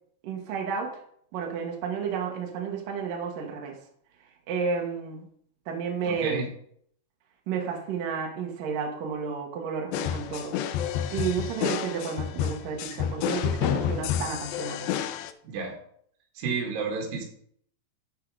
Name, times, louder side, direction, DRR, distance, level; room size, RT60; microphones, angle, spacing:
voice 1, 0.2-1.0 1.3-3.8 4.5-5.3 5.7-6.4 7.5-10.6 11.1-14.9, right 6 dB, 60° right, 1 dB, 2.8 m, -32 dB
voice 2, 6.1-6.5 15.4-15.8 16.4-17.2, right 5 dB, 80° right, 1 dB, 3.8 m, -30 dB
sound 1, 9.9-15.3, left 9 dB, 85° left, 2.1 m, -29 dB
13.0 x 4.7 x 4.8 m, 0.64 s
omnidirectional pair, 4.7 m